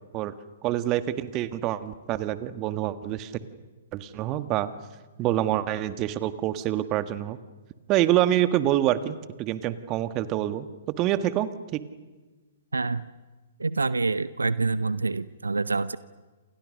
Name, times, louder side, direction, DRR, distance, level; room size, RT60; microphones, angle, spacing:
voice 1, 0.6-3.3 3.9-4.7 5.2-7.4 7.9-10.7 11.0-11.8, right 13 dB, 30° right, 12 dB, 1.6 m, -26 dB
voice 2, 12.7-13.0 13.6-16.0, right 3 dB, 85° right, 17 dB, 0.7 m, -26 dB
28.5 x 28.0 x 6.5 m, 1.3 s
figure-of-eight pair, 120°, 0 cm